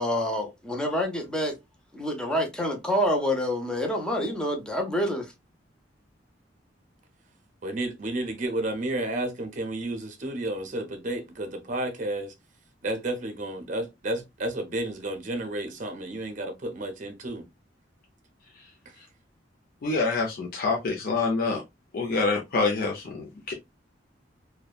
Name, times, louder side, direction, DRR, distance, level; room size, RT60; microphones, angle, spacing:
voice 1, 0.0-1.6 1.9-5.3, equal, 5° left, 0.6 m, -27 dB
voice 2, 7.6-12.3 12.8-17.5 18.9-19.0, right 1 dB, 45° right, 0.6 m, -31 dB
voice 3, 19.8-21.6 21.9-23.5, left 3 dB, 55° left, 0.5 m, -26 dB
2.7 x 2.1 x 2.3 m
head